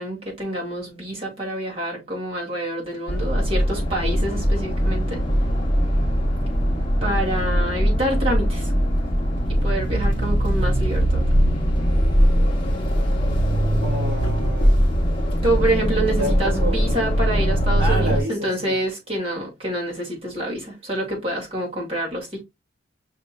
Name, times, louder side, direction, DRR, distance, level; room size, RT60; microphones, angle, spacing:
voice 1, 0.0-5.2 7.0-8.7 9.5-11.2 15.4-22.4, right 1 dB, 30° right, 2.1 m, -27 dB
sound 1, 3.1-18.2, equal, 25° left, 1.1 m, -21 dB
voice 2, 13.8-14.8 16.1-16.8 17.8-18.8, equal, 60° right, 1.9 m, -29 dB
6.3 x 2.9 x 2.2 m
head